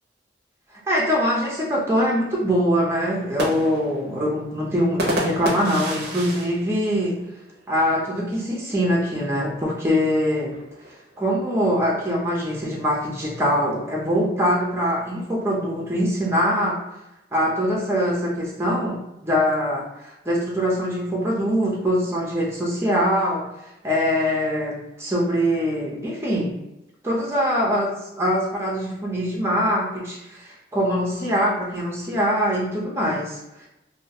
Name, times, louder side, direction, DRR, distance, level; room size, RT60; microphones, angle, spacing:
voice 1, 0.9-7.3 7.7-10.5 11.2-16.8 17.3-23.5 23.8-26.6 27.0-33.7, equal, 15° right, -4 dB, 0.6 m, -23 dB
sound 1, 3.1-7.7 8.1-8.2 8.5-9.0 9.8-11.4, right 1 dB, 60° right, 0.5 m, -31 dB
2.3 x 2.1 x 2.7 m, 0.91 s
head